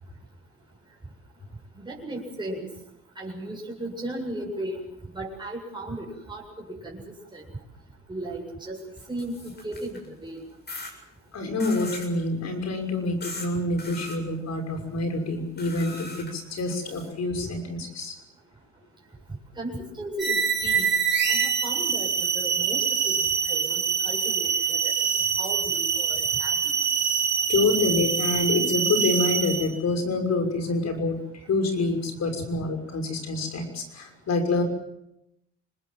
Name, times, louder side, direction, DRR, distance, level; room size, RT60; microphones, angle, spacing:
voice 1, 1.8-2.7 3.2-4.8 5.1-7.0 7.3-7.5 8.1-8.8 9.1-10.4 19.6-20.9 21.3-24.9 25.4-26.5, right 1 dB, 15° right, -2 dB, 7.6 m, -36 dB
sound 1, 9.0-10.1 10.7-10.9 11.6-12.1 13.2-13.5 13.8-14.2 15.6-17.1, left 2 dB, 35° left, 7.4 m, -39 dB
voice 2, 11.3-18.1 27.5-34.6, left 3 dB, 60° left, 5 dB, 6.2 m, -27 dB
sound 2, 20.2-29.8, right 6 dB, 35° right, 4.7 m, -25 dB
25.5 x 20.5 x 7.7 m, 0.84 s
cardioid pair, 90°, 30 cm